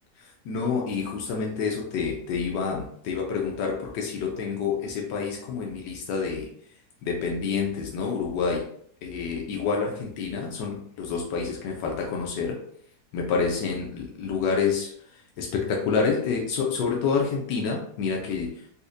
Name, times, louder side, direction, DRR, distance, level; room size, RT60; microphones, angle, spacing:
voice 1, 0.2-6.5 7.0-8.7 9.0-12.6 13.1-18.6, left 5 dB, 85° left, 0 dB, 1.2 m, -28 dB
4.2 x 2.4 x 2.5 m, 0.64 s
omnidirectional pair, 1.8 m